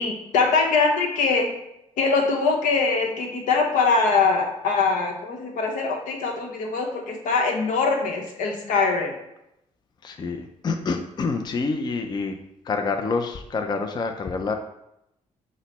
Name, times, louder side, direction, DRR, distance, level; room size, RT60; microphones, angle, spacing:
voice 1, 0.0-1.5 2.0-9.1, left 4 dB, 85° left, 2 dB, 0.8 m, -22 dB
voice 2, 10.0-12.4 12.6-14.5, left 4 dB, 35° left, 5 dB, 0.4 m, -27 dB
6.2 x 2.1 x 4.0 m, 0.83 s
cardioid pair, 100°, 13 cm